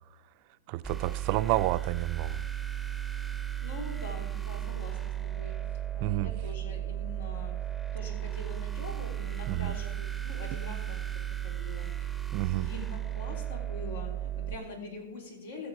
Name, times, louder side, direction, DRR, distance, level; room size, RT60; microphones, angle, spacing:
voice 1, 0.7-2.4 6.0-6.3 9.5-9.8 12.3-12.7, right 16 dB, 45° right, 0.4 m, -30 dB
sound 1, 0.8-14.5, right 11 dB, ahead, 0.6 m, -35 dB
voice 2, 3.6-5.5 5.9-7.5 7.9-11.1 11.4-12.1 12.6-15.7, left 2 dB, 85° left, 3.4 m, -44 dB
15.0 x 6.9 x 4.8 m
supercardioid pair, 150°, 0 cm